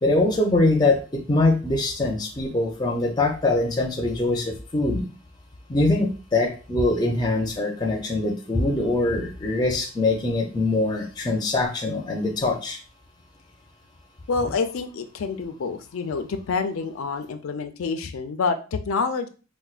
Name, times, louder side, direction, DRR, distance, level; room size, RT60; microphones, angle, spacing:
voice 1, 0.0-5.0 5.7-12.8, left 2 dB, 20° left, 2 dB, 0.4 m, -23 dB
voice 2, 14.3-19.3, left 4 dB, 90° left, 8 dB, 0.4 m, -27 dB
4.3 x 2.2 x 2.3 m, 0.35 s
head